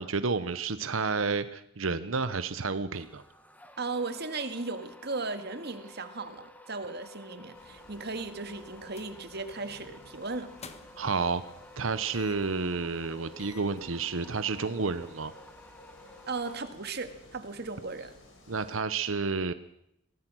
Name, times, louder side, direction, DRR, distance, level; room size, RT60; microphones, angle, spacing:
voice 1, 0.0-3.2 11.0-11.4 11.8-15.3 18.5-19.5, right 4 dB, 90° right, 12 dB, 0.9 m, -30 dB
sound 1, 2.9-17.2, left 1 dB, 10° left, 1.6 m, -53 dB
voice 2, 3.8-10.5 16.3-18.1, right 3 dB, 55° right, 9 dB, 2.0 m, -36 dB
sound 2, 7.5-18.8, left 1 dB, 75° left, 5.7 m, -55 dB
sound 3, 8.8-9.2 9.5-9.7 10.4-11.1 12.1-12.6 13.0-13.1 13.4-13.8, left 5 dB, 35° left, 1.5 m, -50 dB
23.5 x 18.0 x 6.3 m, 0.78 s
head